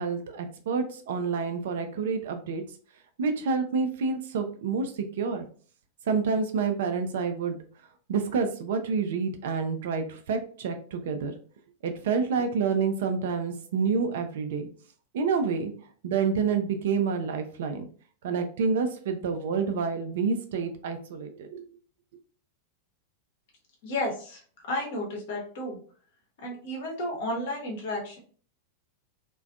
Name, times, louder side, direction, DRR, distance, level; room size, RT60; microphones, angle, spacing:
voice 1, 0.0-2.6 3.2-5.4 6.1-7.6 8.1-11.3 11.8-14.7 15.1-15.7 16.0-17.9 18.2-21.6, right 5 dB, 55° right, 7 dB, 0.4 m, -28 dB
voice 2, 23.8-24.4 24.7-25.8 26.4-28.2, left 1 dB, 55° left, 0 dB, 0.8 m, -32 dB
2.4 x 2.2 x 2.3 m, 0.44 s
figure-of-eight pair, 90°, 0 cm